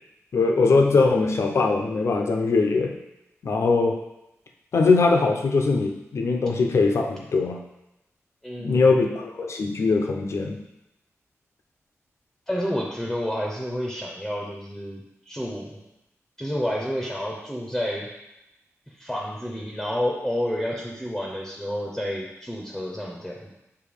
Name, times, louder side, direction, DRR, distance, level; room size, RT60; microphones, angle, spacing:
voice 1, 0.3-2.9 3.4-4.0 4.7-7.6 8.6-10.6, left 3 dB, 60° left, 3 dB, 0.7 m, -21 dB
voice 2, 8.4-8.9 12.5-15.8 16.4-18.1 18.9-23.5, equal, 5° left, -2 dB, 0.7 m, -30 dB
6.9 x 2.8 x 5.0 m, 0.89 s
wide cardioid pair, 145°, 5 cm